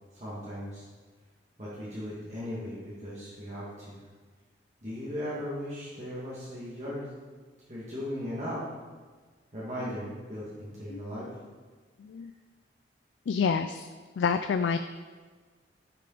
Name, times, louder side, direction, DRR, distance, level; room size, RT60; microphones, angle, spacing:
voice 1, 0.1-0.8 1.6-4.0 4.8-7.1 7.7-8.6 9.5-11.3, equal, 40° right, -8 dB, 1.9 m, -37 dB
voice 2, 12.0-12.3 13.3-13.9 14.2-14.8, left 6 dB, 80° left, 10 dB, 0.3 m, -28 dB
9.2 x 6.6 x 3.9 m, 1.4 s
head